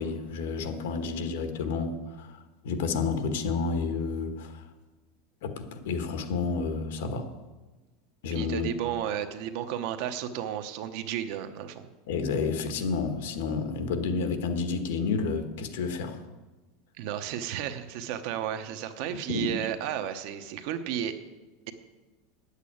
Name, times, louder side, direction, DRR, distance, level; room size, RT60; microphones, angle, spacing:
voice 1, 0.0-4.6 5.4-7.3 8.2-8.7 12.1-16.2 19.3-19.7, left 4 dB, 80° left, 7 dB, 1.5 m, -30 dB
voice 2, 8.3-11.9 17.0-21.1, right 10 dB, 50° right, 9 dB, 0.9 m, -33 dB
9.5 x 8.3 x 8.6 m, 1.2 s
supercardioid pair, 180°, 0 cm